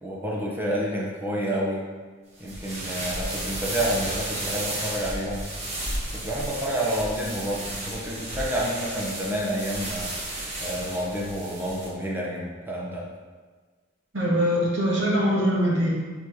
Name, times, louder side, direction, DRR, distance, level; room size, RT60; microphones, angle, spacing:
voice 1, 0.0-1.8 2.4-5.5 6.1-13.0, equal, 10° right, -4 dB, 1.2 m, -29 dB
sound 1, 2.4-11.9, right 1 dB, 35° right, 1.3 m, -33 dB
voice 2, 14.1-15.9, equal, 80° right, -6 dB, 2.1 m, -22 dB
6.4 x 4.0 x 4.9 m, 1.4 s
head